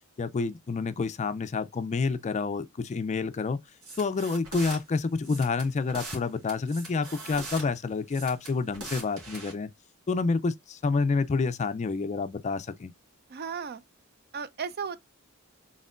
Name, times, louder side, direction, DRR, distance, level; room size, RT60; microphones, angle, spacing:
voice 1, 0.2-3.6 4.0-9.7 10.1-12.9, left 4 dB, 35° left, 0.4 m, -28 dB
sound 1, 3.8-4.8 5.2-6.2 6.5-7.6 8.1-9.5, right 2 dB, 90° right, 2.2 m, -41 dB
voice 2, 13.3-13.8 14.3-15.0, right 6 dB, 45° right, 0.5 m, -35 dB
4.2 x 3.7 x 2.4 m
head